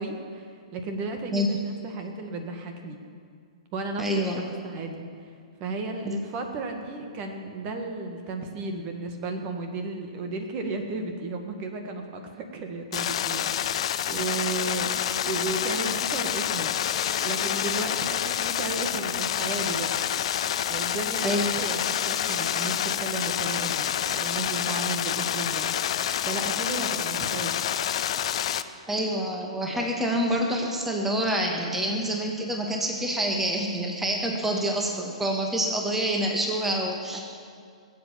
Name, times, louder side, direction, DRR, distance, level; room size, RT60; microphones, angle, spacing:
voice 1, 0.0-3.0 3.7-5.1 5.6-16.8 17.2-20.0 20.7-25.7 26.2-27.5 37.1-37.2, right 3 dB, 35° right, 4 dB, 1.7 m, -34 dB
voice 2, 1.3-1.6 4.0-4.4 6.0-6.2 21.2-21.4 28.9-37.2, equal, 5° right, 0 dB, 1.6 m, -27 dB
sound 1, 12.9-28.6, left 10 dB, 60° left, 0.7 m, -28 dB
19.0 x 8.0 x 7.4 m, 2.1 s
hypercardioid pair, 125°, 3 cm